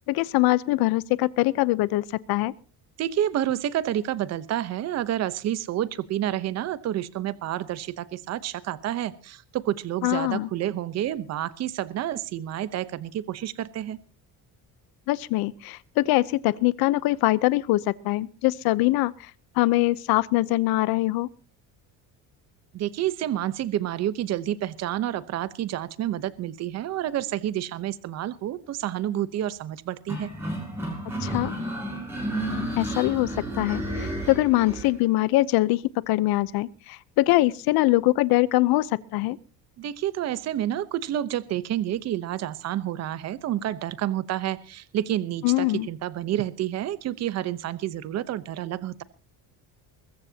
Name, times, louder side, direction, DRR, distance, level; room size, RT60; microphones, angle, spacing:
voice 1, 0.1-2.5 10.0-10.5 15.1-19.3 19.6-21.3 31.2-31.5 32.7-35.8 36.1-39.4 45.4-45.9, left 18 dB, 80° left, 0.8 m, -23 dB
voice 2, 3.0-14.0 22.7-30.3 39.8-49.0, right 12 dB, 45° right, 0.9 m, -29 dB
sound 1, 30.1-34.9, right 1 dB, 5° right, 7.2 m, -31 dB
22.0 x 15.0 x 2.9 m
cardioid pair, 165°, 36 cm